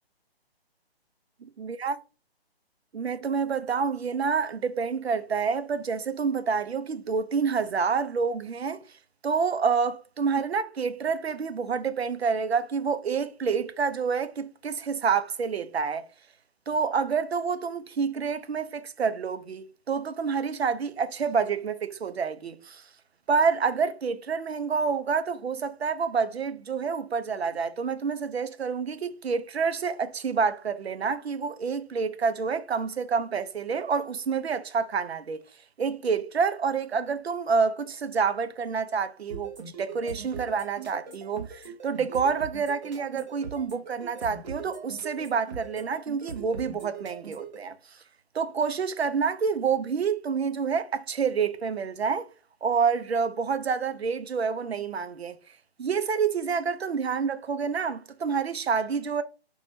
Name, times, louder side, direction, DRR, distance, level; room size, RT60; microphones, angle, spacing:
voice 1, 1.6-2.0 2.9-8.8 9.2-16.0 16.7-22.8 23.3-35.4 35.8-47.7 48.3-52.3 52.6-55.4 55.8-59.2, right 5 dB, 80° right, 0.5 m, -28 dB
sound 1, 39.3-47.6, right 5 dB, 45° right, 0.7 m, -41 dB
2.5 x 2.2 x 3.1 m
figure-of-eight pair, 140°, 32 cm